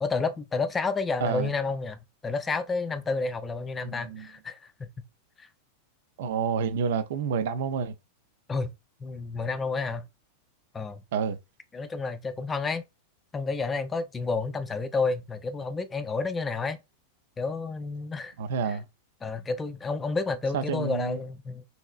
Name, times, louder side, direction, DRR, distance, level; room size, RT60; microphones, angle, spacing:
voice 1, 0.0-4.9 5.4-5.5 8.5-8.7 9.0-10.1 10.7-11.0 11.7-12.8 13.3-16.8 17.4-18.3 18.7-18.8 19.2-21.7, left 4 dB, 15° left, 0.4 m, -30 dB
voice 2, 3.8-4.3 6.2-7.9 11.1-11.4 18.4-18.8 20.5-21.2, right 6 dB, 55° right, 0.4 m, -29 dB
3.1 x 2.8 x 2.3 m
figure-of-eight pair, 90°, 0 cm